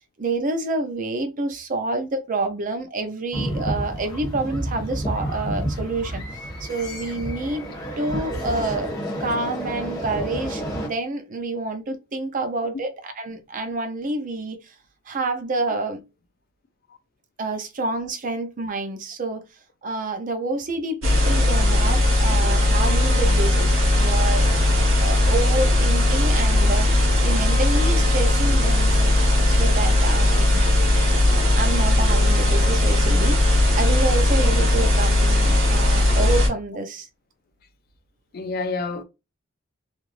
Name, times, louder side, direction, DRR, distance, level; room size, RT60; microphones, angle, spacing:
voice 1, 0.2-6.3 6.6-7.7 8.0-8.9 9.2-14.7 15.1-16.0 17.4-19.5 19.8-24.6 25.0-30.7 31.6-37.1, right 2 dB, 40° right, 0.5 m, -28 dB
sound 1, 3.3-10.9, equal, 20° left, 0.9 m, -30 dB
sound 2, 21.0-36.5, left 1 dB, 75° right, 1.2 m, -18 dB
voice 2, 38.3-39.0, left 3 dB, 50° left, 0.4 m, -29 dB
3.1 x 2.5 x 2.4 m
head